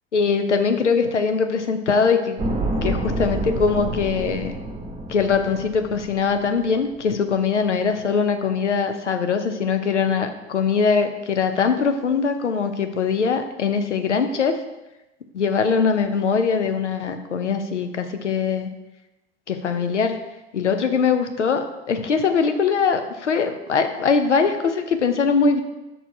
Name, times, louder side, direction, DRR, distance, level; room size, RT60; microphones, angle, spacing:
voice 1, 0.1-2.4 2.8-4.5 5.1-14.6 15.3-18.7 19.5-20.2 20.5-25.6, left 5 dB, 85° left, 7 dB, 0.6 m, -22 dB
sound 1, 2.4-6.7 6.9-7.0, right 2 dB, 15° right, 1.2 m, -28 dB
5.7 x 4.6 x 4.6 m, 1.0 s
figure-of-eight pair, 70°, 35 cm